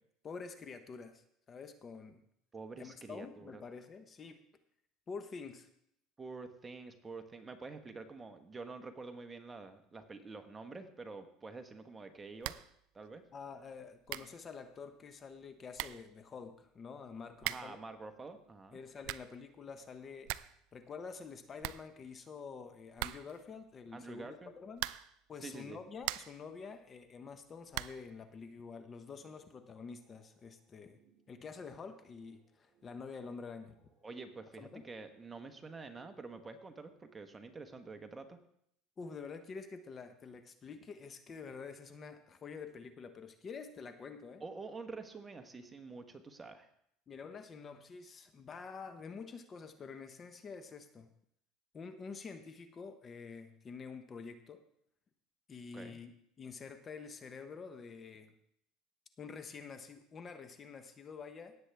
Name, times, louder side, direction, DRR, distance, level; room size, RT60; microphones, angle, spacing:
voice 1, 0.2-2.2 2.8-4.4 5.1-5.7 13.3-17.8 18.7-20.3 20.7-24.9 25.3-31.0 31.3-33.7 34.6-34.8 39.0-44.4 47.1-51.1 51.7-54.6 55.5-56.1 56.4-58.3 59.2-61.6, left 5 dB, 30° left, 8 dB, 1.0 m, -48 dB
voice 2, 2.5-3.6 6.2-12.5 12.9-13.2 17.4-18.8 23.9-24.5 25.4-25.8 34.0-38.4 44.4-46.7 55.7-56.0, right 3 dB, 20° right, 7 dB, 1.2 m, -47 dB
sound 1, 12.4-12.8 13.0-13.1 13.8-13.9 14.1-14.4 15.4-15.5 15.7-16.1 17.4-17.8 18.8-19.4 19.8-19.9 20.1-20.6 20.9-21.0 21.2-21.3 21.6-22.4 23.0-23.5 24.7-25.2 25.7-26.5 27.7-28.1, right 18 dB, 75° right, 0.3 m, -41 dB
sound 2, 29.0-36.3, right 6 dB, 55° right, 4.9 m, -73 dB
17.5 x 8.0 x 3.5 m, 0.71 s
supercardioid pair, 115°, 0 cm